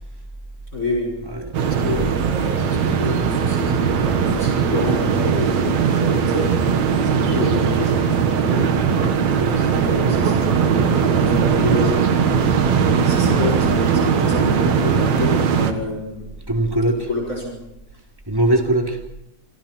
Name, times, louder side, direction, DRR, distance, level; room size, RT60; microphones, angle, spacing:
voice 1, 0.7-1.1 1.6-6.5 7.0-8.2 9.6-12.0 13.0-16.3 17.1-17.5, left 2 dB, 25° left, 0 dB, 5.7 m, -28 dB
voice 2, 1.2-1.7 8.9-9.6 12.8-13.0 16.5-17.1 18.3-19.0, right 1 dB, 5° right, 1 dB, 3.0 m, -22 dB
sound 1, 1.5-15.7, right 6 dB, 70° right, 2.8 m, -19 dB
27.5 x 25.5 x 4.5 m, 0.85 s
omnidirectional pair, 3.4 m